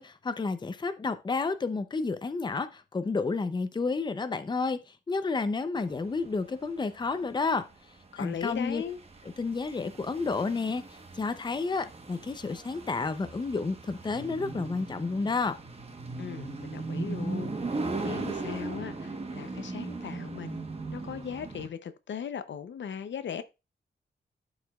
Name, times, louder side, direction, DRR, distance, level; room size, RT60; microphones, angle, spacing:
voice 1, 0.0-7.6 8.2-8.8 9.4-10.8 11.1-15.5, left 4 dB, 25° left, 0.5 m, -30 dB
sound 1, 5.8-21.7, right 3 dB, 35° right, 1.0 m, -38 dB
voice 2, 8.1-9.0 16.2-23.4, left 7 dB, 80° left, 0.6 m, -38 dB
12.0 x 4.9 x 2.3 m
wide cardioid pair, 145°, 19 cm